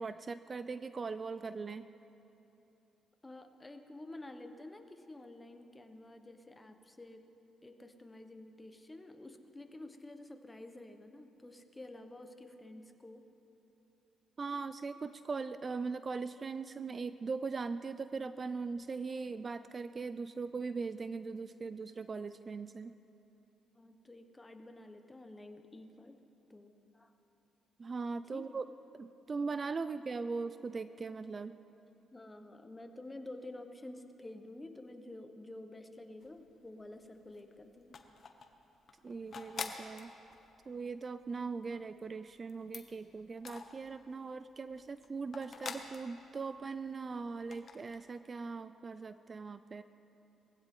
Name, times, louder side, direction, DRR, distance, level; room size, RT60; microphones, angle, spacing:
voice 1, 0.0-1.9 14.4-22.9 27.8-28.7 29.0-31.6 39.0-40.1 40.7-49.8, right 4 dB, 35° right, 13 dB, 0.4 m, -40 dB
voice 2, 3.2-7.3 7.6-13.3 23.7-26.2 26.5-27.1 28.3-28.6 32.1-38.0, left 2 dB, 15° left, 6 dB, 1.1 m, -50 dB
sound 1, 36.2-36.9 37.2-44.3 44.6-47.0 47.3-48.0, left 5 dB, 50° left, 1.1 m, -47 dB
20.0 x 15.5 x 3.8 m, 2.9 s
cardioid pair, 90°, 0 cm